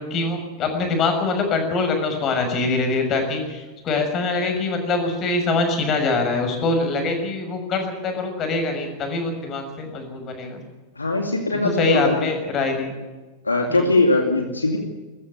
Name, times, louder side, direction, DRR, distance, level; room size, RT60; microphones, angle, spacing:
voice 1, 0.1-10.6 11.6-12.9 13.7-13.9, left 3 dB, 30° left, 5 dB, 6.4 m, -24 dB
voice 2, 11.0-12.3 13.4-14.8, left 2 dB, 80° left, 4 dB, 2.4 m, -21 dB
23.0 x 14.5 x 9.4 m, 1.2 s
figure-of-eight pair, 90°, 0 cm